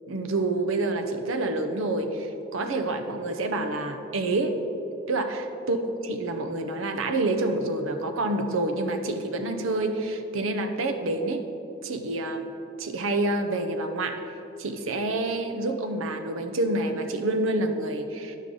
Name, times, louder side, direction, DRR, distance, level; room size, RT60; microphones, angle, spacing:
voice 1, 0.1-4.6 5.1-5.8 6.1-11.4 11.8-12.5 12.8-14.2 14.6-18.4, right 2 dB, 90° right, 6 dB, 0.7 m, -28 dB
10.5 x 5.5 x 3.8 m, 2.9 s
head